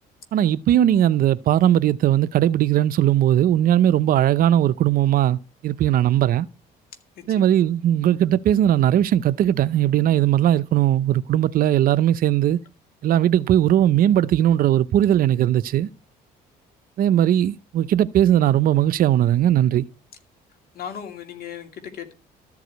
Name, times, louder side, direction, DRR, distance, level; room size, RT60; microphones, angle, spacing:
voice 1, 0.3-6.5 7.3-12.6 13.0-15.9 17.0-19.9, right 11 dB, 60° right, 0.6 m, -19 dB
voice 2, 20.7-22.1, left 8 dB, 60° left, 2.5 m, -36 dB
13.5 x 4.8 x 8.0 m
cardioid pair, 110°, 17 cm